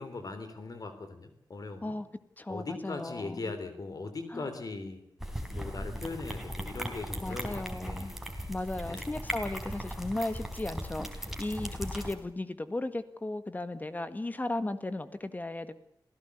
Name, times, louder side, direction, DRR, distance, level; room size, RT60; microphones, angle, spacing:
voice 1, 0.0-2.0 2.5-5.0 5.5-8.2 8.8-9.2 11.3-11.8, left 3 dB, 55° left, 9 dB, 3.4 m, -40 dB
voice 2, 2.4-3.4 4.3-4.5 7.2-8.1 8.5-15.7, left 2 dB, 20° left, 11 dB, 1.7 m, -36 dB
sound 1, 5.2-12.1, equal, 5° right, 4.2 m, -38 dB
27.0 x 16.5 x 8.2 m, 0.71 s
wide cardioid pair, 115°, 8 cm